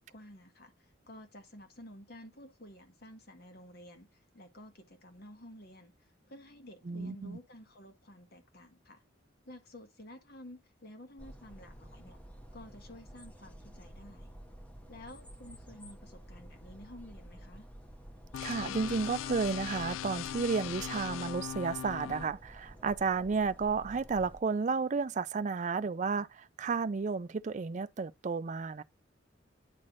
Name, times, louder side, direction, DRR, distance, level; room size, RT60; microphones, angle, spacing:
voice 1, 0.0-9.0 9.4-12.2 12.5-14.3 14.9-17.7, left 1 dB, 55° left, 1.5 m, -52 dB
voice 2, 6.9-7.4 18.4-28.8, right 4 dB, 40° right, 0.4 m, -32 dB
sound 1, 11.2-24.4, equal, 5° left, 0.8 m, -51 dB
sound 2, 18.3-22.3, left 10 dB, 90° left, 0.3 m, -39 dB
9.7 x 3.3 x 3.9 m
head